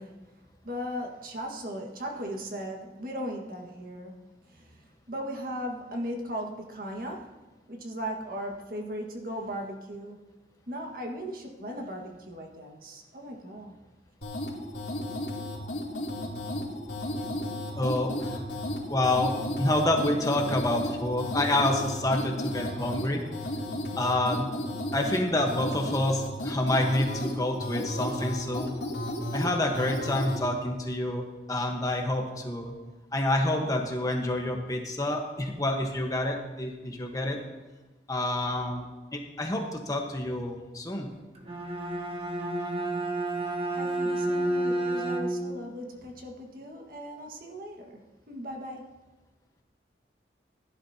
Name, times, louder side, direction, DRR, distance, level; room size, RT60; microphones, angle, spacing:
voice 1, 0.0-7.3 7.7-10.2 10.7-13.8 43.7-48.0 48.3-48.9, equal, 50° right, 1 dB, 1.7 m, -38 dB
sound 1, 14.2-30.4, left 1 dB, 80° left, 3.1 m, -34 dB
voice 2, 17.7-18.4 18.9-23.2 24.0-24.5 24.9-28.7 29.3-32.7 33.1-37.4 38.1-38.9 39.1-41.1, left 1 dB, 20° left, 1 dB, 1.2 m, -28 dB
Bowed string instrument, 41.3-45.6, right 1 dB, 35° right, 1.3 m, -30 dB
16.5 x 11.0 x 2.9 m, 1.2 s
head